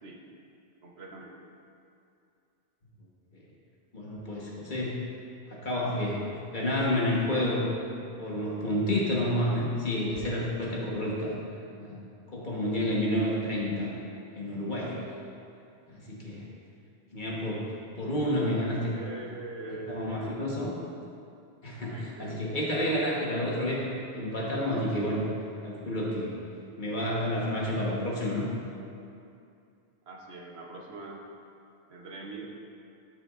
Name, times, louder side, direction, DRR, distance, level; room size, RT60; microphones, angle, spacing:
voice 1, 0.8-1.4 18.9-20.4 21.9-22.7 30.1-31.2 31.9-32.5, right 2 dB, 75° right, -1 dB, 1.2 m, -43 dB
voice 2, 3.9-5.0 5.5-6.2 6.5-7.7 8.2-11.3 11.8-12.0 12.3-13.9 14.3-15.0 15.9-16.4 17.1-17.6 18.0-19.0 19.9-20.7 21.6-23.8 24.1-25.2 25.6-26.3 26.8-28.5, left 1 dB, 50° left, -4 dB, 1.4 m, -29 dB
12.0 x 6.2 x 2.5 m, 2.5 s
omnidirectional pair, 1.1 m